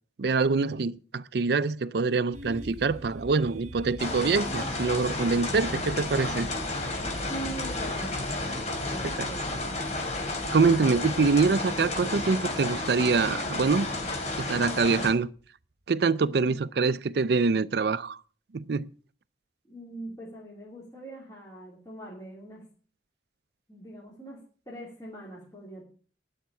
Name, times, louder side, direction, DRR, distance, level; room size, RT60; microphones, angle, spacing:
voice 1, 0.2-6.5 10.5-13.9 14.4-15.3 15.9-18.2 18.5-18.9, right 4 dB, 60° right, 0.5 m, -25 dB
sound 1, 2.3-15.2, right 1 dB, 40° right, 0.9 m, -44 dB
sound 2, 4.0-15.1, left 2 dB, 40° left, 2.8 m, -32 dB
voice 2, 7.3-8.4 8.7-9.5 19.7-22.6 23.7-24.4 24.7-25.8, right 1 dB, 20° left, 3.1 m, -42 dB
12.0 x 5.8 x 8.2 m
head